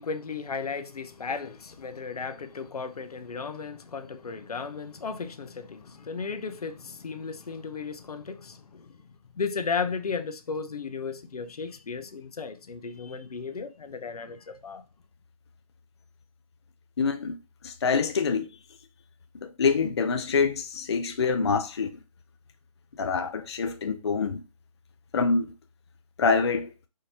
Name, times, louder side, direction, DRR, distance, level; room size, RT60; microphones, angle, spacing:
voice 1, 0.0-9.0 9.3-14.8, left 5 dB, 80° left, 0.7 m, -35 dB
voice 2, 17.0-17.4 17.6-18.5 19.4-22.0 23.0-24.4 25.1-25.5 26.2-26.7, left 5 dB, 45° left, 0.4 m, -25 dB
4.9 x 2.8 x 2.8 m
hypercardioid pair, 165°, 19 cm